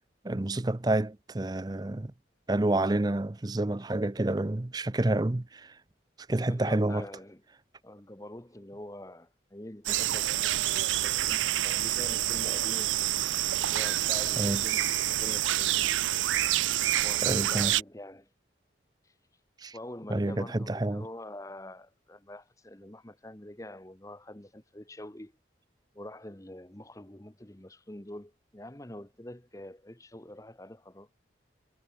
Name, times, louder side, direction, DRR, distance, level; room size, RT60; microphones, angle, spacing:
voice 1, 0.2-2.1 2.5-5.8 6.3-7.1 14.4-14.6 17.2-17.7 19.6-19.7 20.1-21.1, right 2 dB, 20° right, 0.5 m, -29 dB
voice 2, 6.5-7.4 7.8-13.0 13.6-16.0 17.0-18.3 19.0-19.1 19.7-25.3 25.9-31.1, left 1 dB, 15° left, 1.2 m, -45 dB
sound 1, 9.9-17.8, right 14 dB, 85° right, 0.4 m, -27 dB
head